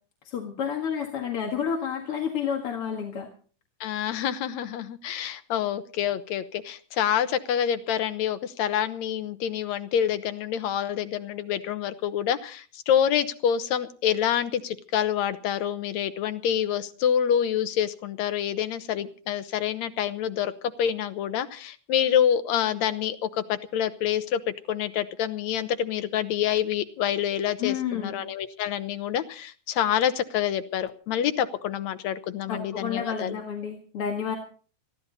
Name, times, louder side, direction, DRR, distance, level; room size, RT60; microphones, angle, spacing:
voice 1, 0.2-3.3 27.6-28.2 32.5-34.4, left 7 dB, 50° left, 2 dB, 2.6 m, -30 dB
voice 2, 3.8-20.5 20.8-24.4 24.7-33.4, left 9 dB, 70° left, 11 dB, 2.2 m, -27 dB
21.0 x 15.0 x 4.1 m, 0.43 s
omnidirectional pair, 3.4 m